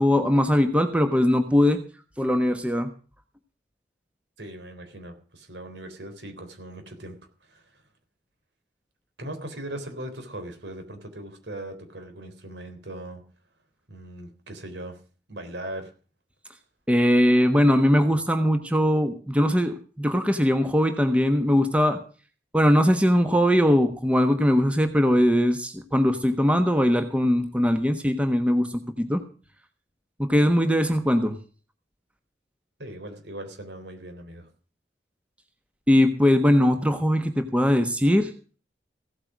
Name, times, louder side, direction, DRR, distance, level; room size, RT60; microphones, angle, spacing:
voice 1, 0.0-1.8 2.2-2.9 16.9-22.0 22.5-29.2 30.2-31.4 35.9-38.3, equal, 5° right, 7 dB, 1.2 m, -21 dB
voice 2, 4.4-7.8 9.2-13.2 13.9-15.0 15.3-15.9 32.8-34.5, right 1 dB, 75° right, 7 dB, 3.7 m, -39 dB
16.0 x 8.8 x 6.2 m, 0.38 s
head